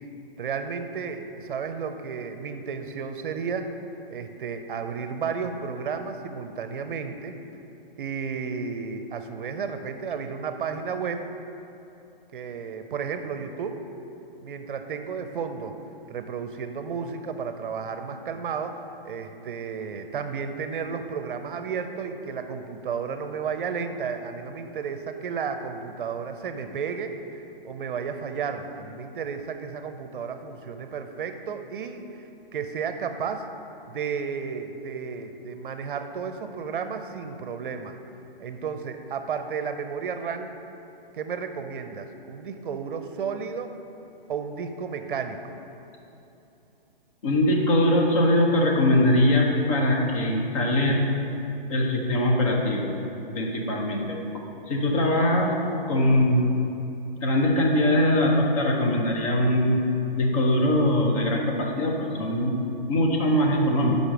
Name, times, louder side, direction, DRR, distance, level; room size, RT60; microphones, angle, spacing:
voice 1, 0.4-3.7 4.1-7.3 8.0-11.2 12.3-13.8 14.4-15.8 16.1-27.2 27.6-32.2 32.5-33.5 33.9-37.9 38.4-40.5 41.1-43.7 44.3-45.6, right 6 dB, 60° right, 7 dB, 0.6 m, -32 dB
voice 2, 47.2-51.0 51.7-52.9 53.3-54.2 54.7-55.5 55.9-56.4 57.2-59.8 60.2-62.5 62.9-64.0, left 1 dB, 35° left, 0 dB, 0.9 m, -22 dB
5.3 x 5.0 x 6.1 m, 2.9 s
hypercardioid pair, 165°, 29 cm